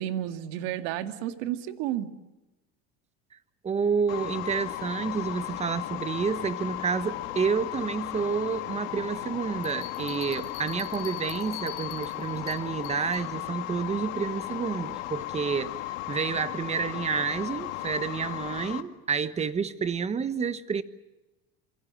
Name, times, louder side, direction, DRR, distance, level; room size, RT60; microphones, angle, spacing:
voice 1, 0.0-2.1, right 12 dB, 70° right, 2.2 m, -31 dB
voice 2, 3.6-20.8, right 6 dB, 20° right, 1.2 m, -29 dB
sound 1, 4.1-18.8, left 16 dB, 80° left, 2.1 m, -36 dB
Bell, 9.6-13.3, left 15 dB, 40° left, 3.1 m, -44 dB
27.0 x 24.5 x 7.5 m
cardioid pair, 140°, 30 cm